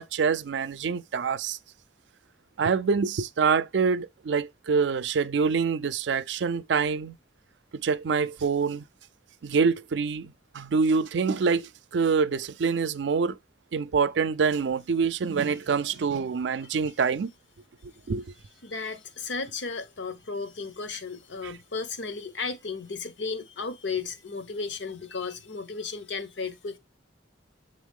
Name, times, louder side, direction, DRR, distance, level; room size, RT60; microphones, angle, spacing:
voice 1, 0.0-1.6 2.6-7.2 7.7-8.8 9.4-13.4 13.7-17.3 18.1-18.2 21.4-21.5, right 5 dB, 75° right, 0.4 m, -26 dB
voice 2, 18.6-26.8, left 4 dB, 80° left, 0.9 m, -34 dB
7.2 x 3.9 x 3.5 m
head